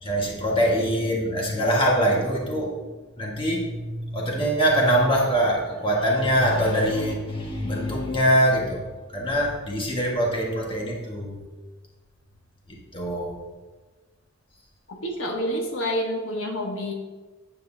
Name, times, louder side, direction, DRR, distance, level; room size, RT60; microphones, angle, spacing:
voice 1, 0.0-2.8 3.2-8.8 9.1-11.4 12.9-13.4, equal, 25° left, -2 dB, 1.5 m, -23 dB
voice 2, 14.9-16.9, equal, 85° left, 1 dB, 1.3 m, -28 dB
9.3 x 7.9 x 2.7 m, 1.3 s
head